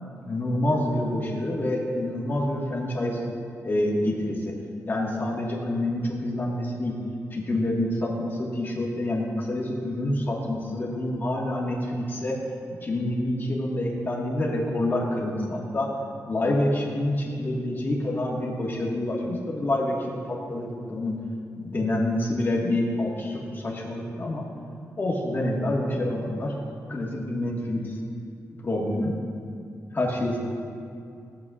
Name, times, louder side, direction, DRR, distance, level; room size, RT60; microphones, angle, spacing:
voice 1, 0.2-3.2 3.6-4.5 4.9-7.0 7.3-12.4 12.8-15.9 16.2-21.2 21.6-24.5 25.0-26.5 26.9-27.9 28.6-29.1 29.9-30.4, left 1 dB, 35° left, -3 dB, 1.5 m, -27 dB
14.5 x 7.5 x 2.4 m, 2.5 s
wide cardioid pair, 115°, 6 cm